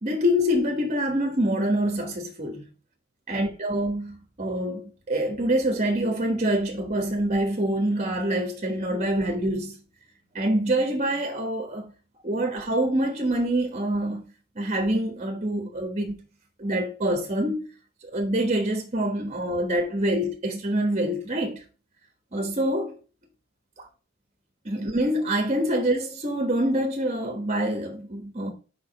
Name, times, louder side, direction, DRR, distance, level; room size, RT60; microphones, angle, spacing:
voice 1, 0.0-2.5 3.3-9.8 10.3-11.9 12.2-14.2 14.5-16.2 16.6-17.6 18.0-21.6 22.3-23.0 24.6-28.5, right 1 dB, 35° right, 1.2 m, -25 dB
5.0 x 4.8 x 5.8 m
head